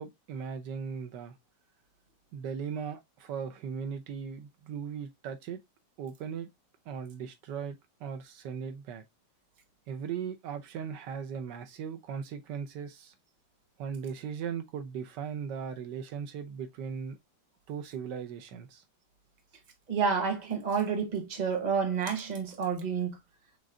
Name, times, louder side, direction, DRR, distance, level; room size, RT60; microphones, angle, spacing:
voice 1, 0.0-1.3 2.3-5.6 6.0-6.5 6.9-9.0 9.9-13.1 13.8-17.2 17.7-18.8, right 7 dB, 85° right, 1.4 m, -38 dB
voice 2, 19.9-23.2, right 6 dB, 30° right, 1.1 m, -29 dB
6.2 x 3.2 x 2.5 m
omnidirectional pair, 1.8 m